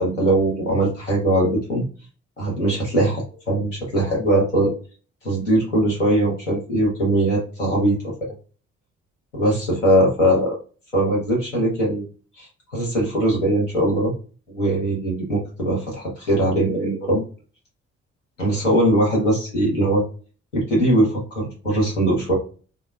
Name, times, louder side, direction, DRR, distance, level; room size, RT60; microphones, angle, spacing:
voice 1, 0.0-1.8 2.4-4.7 5.2-8.3 9.3-10.5 10.9-12.0 12.4-14.1 14.5-17.2 18.4-20.0 20.5-22.3, right 1 dB, 85° left, -2 dB, 1.1 m, -21 dB
3.5 x 3.1 x 2.3 m, 0.37 s
figure-of-eight pair, 40°, 36 cm